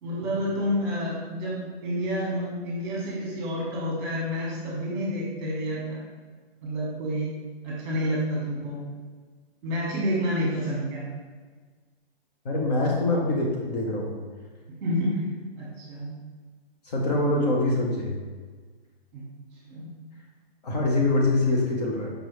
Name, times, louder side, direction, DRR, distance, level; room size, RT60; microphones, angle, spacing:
voice 1, 0.0-6.0 6.6-7.3 7.6-8.8 9.6-11.1 14.8-15.2 15.6-16.1 19.1-19.2 19.7-19.9, equal, 20° right, -5 dB, 1.5 m, -29 dB
voice 2, 12.4-14.1 16.9-18.2 20.6-22.1, left 2 dB, 40° left, -2 dB, 0.8 m, -24 dB
5.3 x 3.0 x 3.2 m, 1.5 s
hypercardioid pair, 145°, 31 cm